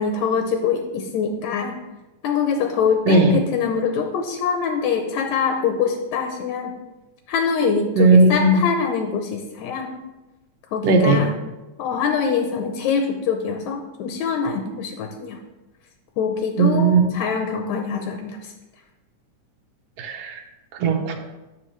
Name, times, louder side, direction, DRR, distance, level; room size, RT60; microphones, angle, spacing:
voice 1, 0.0-1.8 2.2-6.7 7.3-9.9 10.7-11.3 11.8-15.4 16.2-18.5, left 6 dB, 75° left, 4 dB, 2.0 m, -24 dB
voice 2, 3.1-3.4 8.0-8.6 10.8-11.3 16.6-17.0 20.0-20.4 20.8-21.2, right 3 dB, 65° right, 4 dB, 1.7 m, -16 dB
11.5 x 7.1 x 3.2 m, 1.1 s
omnidirectional pair, 3.5 m